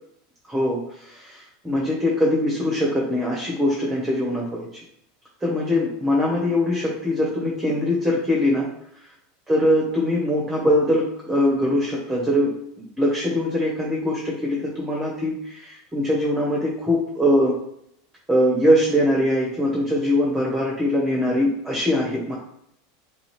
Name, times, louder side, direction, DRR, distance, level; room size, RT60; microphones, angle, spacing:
voice 1, 0.5-4.8 5.4-8.7 9.5-12.6 13.0-17.5 18.3-22.3, left 1 dB, 10° right, -3 dB, 0.8 m, -22 dB
3.2 x 2.7 x 3.1 m, 0.73 s
figure-of-eight pair, 80°, 0 cm